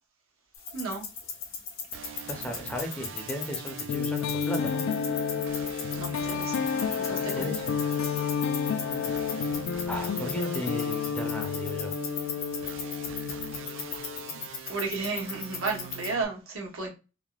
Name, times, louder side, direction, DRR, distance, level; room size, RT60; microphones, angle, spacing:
sound 1, 0.5-16.1, left 6 dB, 85° left, 1.0 m, -39 dB
voice 1, 0.7-1.0 6.0-6.6 7.0-7.6 14.7-16.9, right 4 dB, 85° right, 1.0 m, -33 dB
sound 2, 1.9-16.2, right 7 dB, 65° right, 0.3 m, -43 dB
voice 2, 2.3-4.8 7.1-7.6 9.9-11.9, equal, 5° left, 0.5 m, -36 dB
sound 3, 3.9-14.5, left 7 dB, 65° left, 0.3 m, -31 dB
3.5 x 2.1 x 2.3 m
head